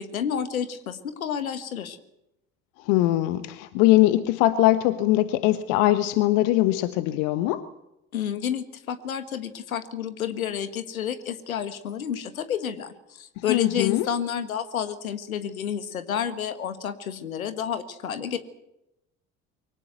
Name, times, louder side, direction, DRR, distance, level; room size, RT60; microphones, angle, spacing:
voice 1, 0.0-2.0 8.1-18.4, left 8 dB, 80° left, 11 dB, 1.6 m, -30 dB
voice 2, 2.8-7.7 13.5-14.1, left 16 dB, 65° left, 13 dB, 1.2 m, -21 dB
24.0 x 17.5 x 8.1 m, 0.86 s
figure-of-eight pair, 55°, 41 cm